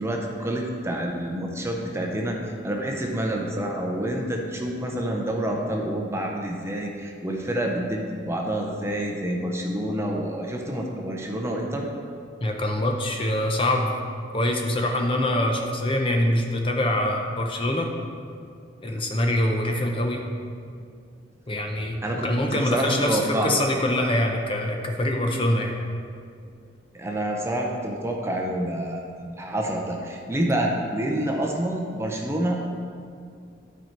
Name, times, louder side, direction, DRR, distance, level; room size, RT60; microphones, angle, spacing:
voice 1, 0.0-2.4 2.6-11.8 22.0-23.5 26.9-32.7, right 1 dB, 15° right, 0 dB, 0.6 m, -28 dB
voice 2, 12.4-13.9 14.3-17.9 18.8-20.2 21.5-25.7, left 1 dB, 25° left, 2 dB, 0.6 m, -24 dB
11.5 x 4.5 x 4.5 m, 2.3 s
head